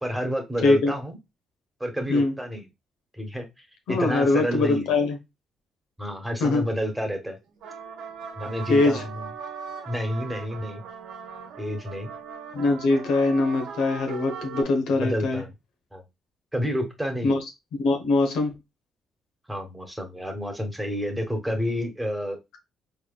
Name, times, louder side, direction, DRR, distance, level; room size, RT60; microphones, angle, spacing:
voice 1, 0.0-1.2 1.8-2.7 3.1-4.9 6.0-7.4 8.4-9.3 9.8-10.8 11.6-12.1 15.0-15.5 15.9-16.0 16.5-17.4 19.5-22.6, equal, 5° right, 4 dB, 1.2 m, -30 dB
voice 2, 0.6-0.9 2.1-2.3 3.9-5.2 6.4-6.7 8.7-9.0 12.5-15.4 17.2-17.4 17.8-18.5, left 3 dB, 85° left, 3 dB, 1.1 m, -22 dB
sound 1, 7.5-14.6, right 6 dB, 90° right, 1.0 m, -39 dB
4.1 x 3.5 x 2.3 m, 0.22 s
cardioid pair, 90°, 0 cm